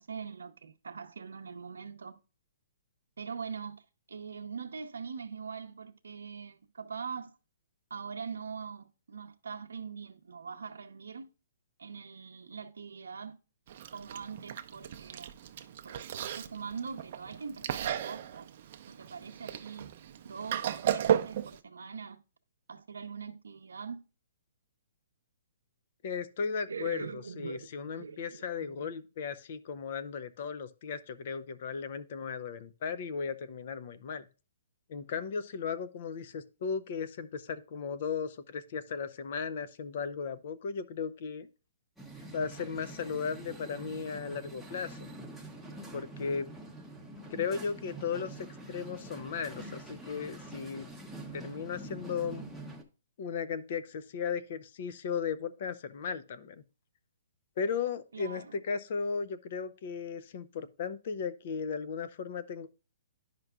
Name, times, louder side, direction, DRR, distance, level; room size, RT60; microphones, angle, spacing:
voice 1, 0.0-2.2 3.2-7.4 7.9-11.3 11.8-13.4 13.9-15.3 15.8-18.5 18.9-19.9 20.2-22.2 22.7-24.0 26.7-28.9 58.1-58.6, right 6 dB, 90° right, 0.6 m, -42 dB
Chewing mastication, 13.7-21.6, right 10 dB, 50° right, 0.5 m, -35 dB
voice 2, 26.0-27.1 27.4-34.3 34.9-41.5 42.3-45.1 45.9-46.5 47.3-50.9 51.3-52.4 53.2-56.6 57.6-62.7, left 6 dB, 50° left, 0.6 m, -36 dB
sound 1, 42.0-52.8, right 1 dB, ahead, 0.8 m, -46 dB
11.0 x 5.2 x 2.4 m
hypercardioid pair, 155°, 0 cm